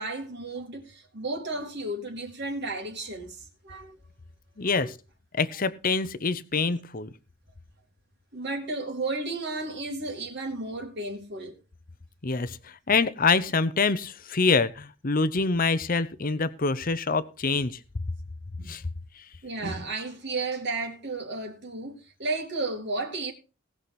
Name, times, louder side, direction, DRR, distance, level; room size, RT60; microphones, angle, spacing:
voice 1, 0.0-4.0 4.6-4.9 8.3-11.6 18.6-18.8 19.4-23.3, right 2 dB, 55° right, 2.6 m, -33 dB
voice 2, 4.6-4.9 5.3-7.1 12.2-17.8 18.7-18.8, left 4 dB, 45° left, 0.8 m, -25 dB
19.0 x 6.4 x 4.3 m
head